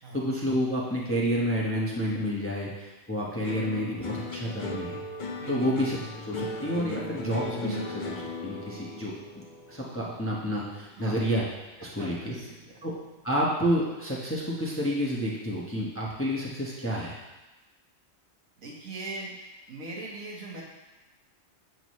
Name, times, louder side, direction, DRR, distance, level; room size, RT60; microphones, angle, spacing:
voice 1, 0.0-5.0 5.5-11.4 11.8-12.4 12.8-12.9 13.2-17.2, equal, 10° left, -4 dB, 0.9 m, -30 dB
sound 1, 3.4-11.9 12.2-12.9, left 2 dB, 45° left, 0.7 m, -38 dB
voice 2, 12.0-12.6 18.6-19.3 19.7-20.6, right 2 dB, 75° right, -2 dB, 1.8 m, -39 dB
7.5 x 6.3 x 3.1 m, 1.1 s
omnidirectional pair, 1.4 m